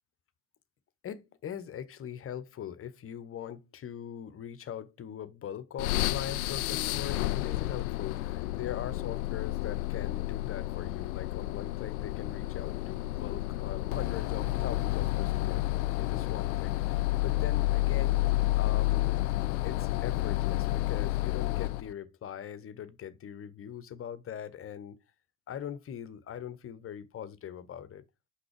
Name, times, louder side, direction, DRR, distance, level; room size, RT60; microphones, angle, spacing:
voice 1, 1.0-15.6 16.0-18.2 18.6-19.2 19.6-25.0 25.5-28.0, left 9 dB, 30° left, 0.8 m, -41 dB
sound 1, 5.8-21.9, left 18 dB, 65° left, 0.5 m, -30 dB
6.0 x 5.6 x 5.0 m
figure-of-eight pair, 60°, 47 cm